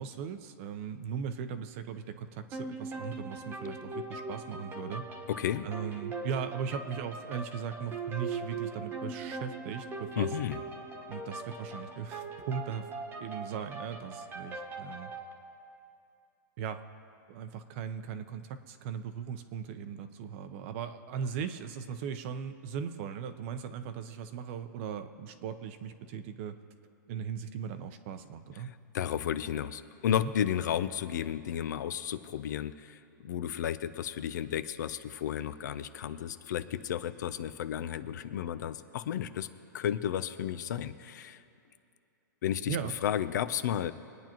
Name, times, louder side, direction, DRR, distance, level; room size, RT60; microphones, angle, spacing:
voice 1, 0.0-5.0 5.6-10.3 11.1-12.9 13.2-15.1 16.6-16.8 17.3-26.6 27.1-28.7 30.2-30.3 42.7-42.9, right 7 dB, 40° right, 9 dB, 0.7 m, -38 dB
sound 1, 2.5-15.3, right 3 dB, 20° right, 1.2 m, -40 dB
voice 2, 5.3-5.7 10.2-10.6 28.6-39.5 39.7-41.4 42.4-42.8 43.0-43.9, left 10 dB, 65° left, 12 dB, 0.6 m, -33 dB
23.5 x 9.3 x 3.0 m, 2.6 s
hypercardioid pair, 155°, 11 cm